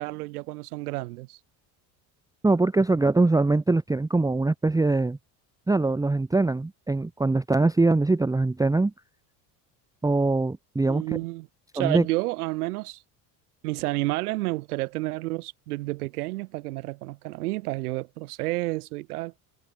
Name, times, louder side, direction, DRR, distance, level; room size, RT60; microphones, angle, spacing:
voice 1, 0.0-1.4 10.9-11.5 11.7-13.0 13.6-19.3, right 20 dB, 90° right, 3.4 m, -30 dB
voice 2, 2.4-5.2 5.7-8.9 10.0-11.2 11.8-12.1, right 3 dB, 10° right, 0.8 m, -22 dB
supercardioid pair, 90°, 44 cm